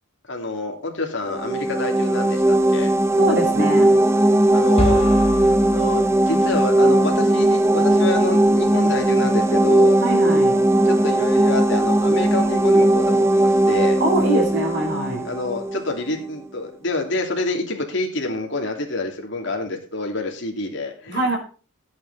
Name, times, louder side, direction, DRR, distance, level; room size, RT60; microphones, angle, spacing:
voice 1, 0.3-2.4 2.7-2.9 4.5-5.0 5.7-10.0 10.8-14.0 15.2-21.4, left 2 dB, 55° left, 2 dB, 2.9 m, -27 dB
sound 1, 1.3-15.9, right 1 dB, 10° right, 0.6 m, -18 dB
voice 2, 3.2-3.9 10.0-10.6 14.0-15.3 21.1-21.4, right 2 dB, 50° right, 1 dB, 3.9 m, -23 dB
sound 2, 4.8-6.8, left 1 dB, 30° left, 2.0 m, -27 dB
14.5 x 8.7 x 4.2 m, 0.38 s
head